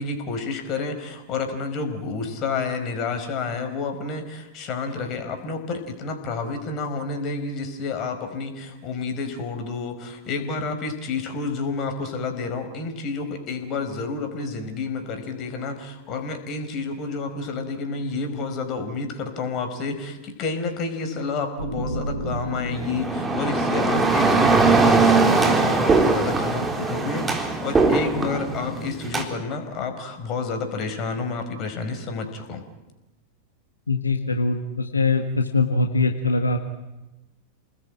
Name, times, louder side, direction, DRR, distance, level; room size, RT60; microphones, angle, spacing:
voice 1, 0.0-32.6, left 4 dB, 35° left, 7 dB, 5.0 m, -30 dB
sound 1, 21.6-25.2, right 2 dB, 85° right, 3.6 m, -34 dB
sound 2, 22.6-29.2, right 3 dB, 15° right, 3.9 m, -20 dB
voice 2, 33.9-36.6, left 3 dB, 80° left, 5 dB, 1.7 m, -22 dB
29.5 x 20.0 x 8.9 m, 1.0 s
figure-of-eight pair, 90°, 0 cm